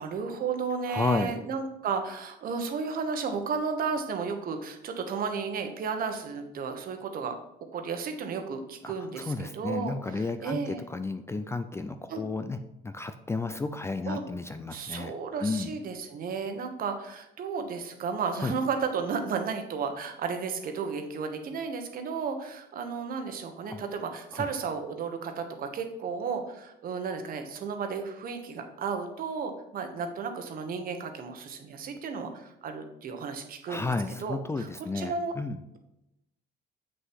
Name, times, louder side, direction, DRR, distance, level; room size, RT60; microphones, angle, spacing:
voice 1, 0.0-7.3 7.7-10.8 12.1-12.2 14.1-14.2 14.7-33.9 34.2-35.3, right 5 dB, 50° right, 6 dB, 1.3 m, -33 dB
voice 2, 0.9-1.4 8.8-12.6 12.8-15.1 15.4-15.8 18.4-18.6 23.7-23.8 24.3-24.5 33.7-35.6, left 3 dB, 15° left, 9 dB, 0.4 m, -32 dB
7.7 x 6.4 x 4.7 m, 0.88 s
cardioid pair, 135°, 18 cm